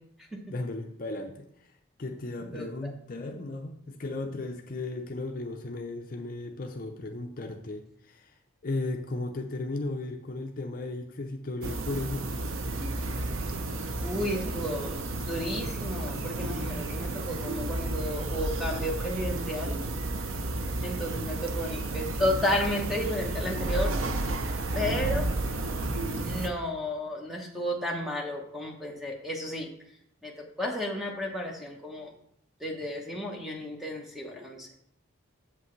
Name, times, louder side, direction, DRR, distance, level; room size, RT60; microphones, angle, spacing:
voice 1, 0.5-1.7 2.0-8.4 8.6-12.4, left 2 dB, 45° left, 3 dB, 0.6 m, -35 dB
sound 1, 11.6-26.5, right 2 dB, 80° right, 0.7 m, -32 dB
voice 2, 14.0-19.8 20.8-23.9 24.7-25.3 26.1-29.7 30.2-30.3 30.6-32.1 32.6-34.7, left 1 dB, ahead, 0 dB, 1.0 m, -32 dB
8.1 x 7.4 x 3.2 m, 0.72 s
head